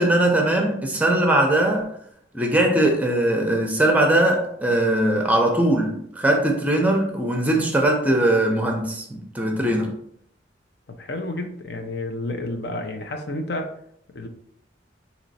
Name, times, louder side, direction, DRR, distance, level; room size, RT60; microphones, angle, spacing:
voice 1, 0.0-1.9 2.3-9.9, right 1 dB, 10° right, 2 dB, 0.6 m, -20 dB
voice 2, 10.9-13.7 14.1-14.3, left 2 dB, 60° left, 5 dB, 0.6 m, -30 dB
4.3 x 2.9 x 4.1 m, 0.68 s
head